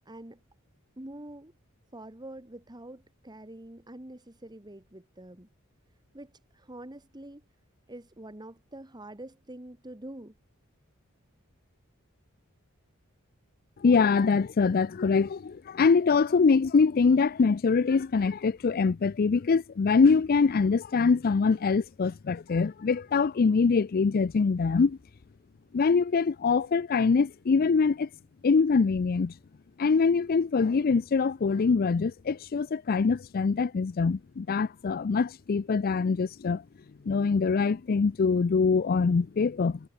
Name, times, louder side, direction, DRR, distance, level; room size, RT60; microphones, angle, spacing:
voice 1, 0.1-0.4 1.0-1.5 1.9-5.5 6.1-7.4 7.9-10.3, right 1 dB, 20° right, 1.8 m, -45 dB
voice 2, 13.8-25.0 25.7-28.1 28.4-29.3 29.8-36.6 37.1-39.8, left 5 dB, 45° left, 0.4 m, -24 dB
head